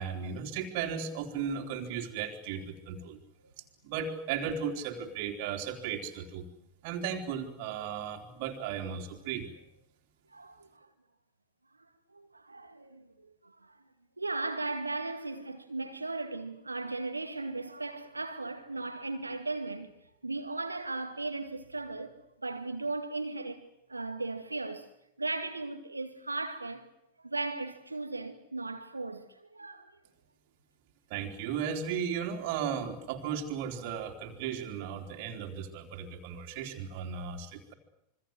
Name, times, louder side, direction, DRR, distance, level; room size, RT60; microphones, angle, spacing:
voice 1, 0.0-3.2 3.8-6.5 6.8-9.5 31.1-37.7, right 7 dB, 45° right, 3.6 m, -35 dB
voice 2, 10.3-10.9 12.1-13.0 13.4-13.7 14.2-19.9 20.2-22.2 22.4-24.9 25.2-26.8 27.2-29.3 29.5-29.9, right 3 dB, 80° right, 2.1 m, -37 dB
26.5 x 24.5 x 7.9 m
figure-of-eight pair, 90°, 0 cm